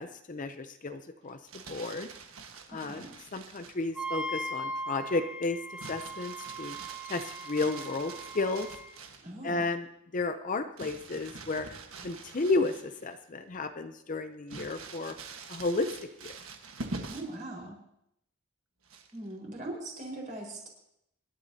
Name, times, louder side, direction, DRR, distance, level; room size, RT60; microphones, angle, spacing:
voice 1, 0.0-1.4 1.7-2.1 2.7-5.6 5.9-6.8 7.1-8.7 9.4-9.9 10.1-11.7 12.0-15.1 15.5-15.9 16.2-16.4, left 3 dB, 35° left, 8 dB, 0.6 m, -32 dB
Crumpling crinkling, 1.3-3.9 5.8-9.3 10.8-13.1 13.5-13.6 14.5-17.4 18.9-19.3, right 3 dB, 70° right, 1.4 m, -45 dB
voice 2, 2.7-3.1 9.2-9.7 17.1-17.8 19.1-20.7, right 1 dB, 35° right, -2 dB, 4.6 m, -40 dB
Wind instrument woodwind instrument, 3.9-8.9, right 1 dB, 5° right, 2.3 m, -39 dB
25.5 x 12.0 x 2.8 m, 0.77 s
head